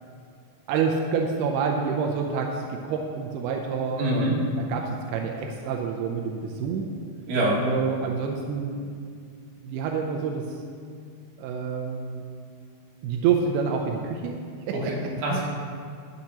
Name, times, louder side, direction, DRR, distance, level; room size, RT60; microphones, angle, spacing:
voice 1, 0.7-6.9 7.7-8.8 9.6-10.5 11.4-12.2 13.0-14.3 14.7-14.8 15.3-15.5, right 6 dB, 80° right, 1 dB, 2.4 m, -27 dB
voice 2, 4.0-4.4 7.3-7.7 14.7-15.5, right 1 dB, 60° right, -5 dB, 3.6 m, -25 dB
21.5 x 7.2 x 2.9 m, 2.3 s
omnidirectional pair, 5.1 m